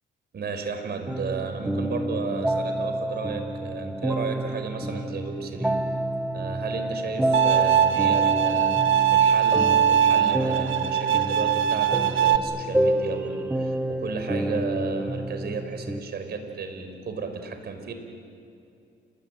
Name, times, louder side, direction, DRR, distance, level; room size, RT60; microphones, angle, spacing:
voice 1, 0.3-5.8 6.3-8.8 9.1-17.9, right 5 dB, 55° right, 6 dB, 4.8 m, -33 dB
sound 1, 1.1-16.0, right 1 dB, 5° right, 1.3 m, -29 dB
Bowed string instrument, 7.3-12.4, right 9 dB, 85° right, 1.3 m, -21 dB
29.0 x 21.0 x 9.1 m, 2.5 s
cardioid pair, 90°, 20 cm